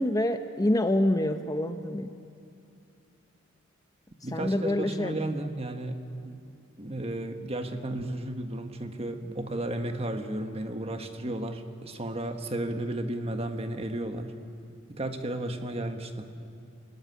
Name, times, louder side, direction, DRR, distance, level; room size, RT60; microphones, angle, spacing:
voice 1, 0.0-2.1 4.3-5.2, left 1 dB, 15° left, 8 dB, 0.7 m, -26 dB
voice 2, 4.2-6.4 6.8-14.3 14.9-16.3, right 1 dB, 30° right, 6 dB, 1.5 m, -33 dB
26.5 x 18.0 x 10.0 m, 2.6 s
head